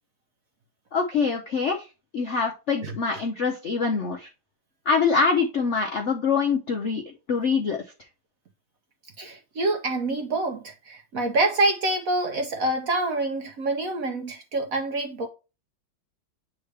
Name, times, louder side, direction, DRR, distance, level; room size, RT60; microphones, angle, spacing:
voice 1, 0.9-4.3 4.9-7.8, left 5 dB, 65° left, 0.7 m, -25 dB
voice 2, 2.8-3.2 9.2-15.3, right 2 dB, 60° right, 0.9 m, -26 dB
8.0 x 3.7 x 3.3 m
omnidirectional pair, 2.2 m